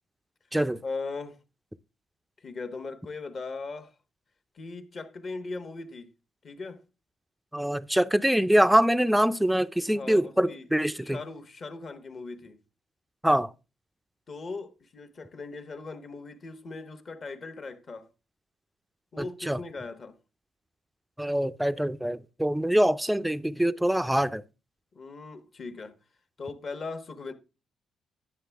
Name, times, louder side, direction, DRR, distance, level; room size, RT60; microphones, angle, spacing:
voice 1, 0.8-1.4 2.4-3.9 4.5-6.1 6.4-6.8 9.9-10.7 10.9-12.6 14.3-18.1 19.1-20.2 24.9-25.9 26.4-27.3, left 3 dB, 45° left, 1.1 m, -39 dB
voice 2, 7.5-11.2 13.2-13.5 19.2-19.6 21.2-24.4, equal, 5° right, 0.4 m, -24 dB
9.6 x 6.9 x 3.4 m
cardioid pair, 90°, 0 cm